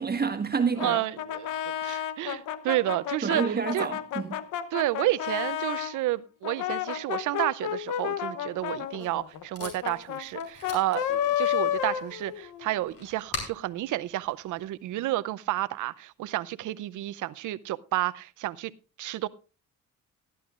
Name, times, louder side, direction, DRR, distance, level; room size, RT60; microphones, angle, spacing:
voice 1, 0.0-1.0 1.9-2.0 3.2-4.5, right 5 dB, 30° right, 1.5 m, -29 dB
Brass instrument, 0.8-6.0 6.4-12.7, left 10 dB, 80° left, 0.9 m, -31 dB
voice 2, 0.8-3.9 4.7-18.7 19.0-19.3, right 15 dB, 80° right, 0.6 m, -31 dB
Packing tape duct tape, 8.6-15.1, left 2 dB, 50° left, 4.9 m, -44 dB
18.5 x 11.0 x 2.4 m
cardioid pair, 90°, 30 cm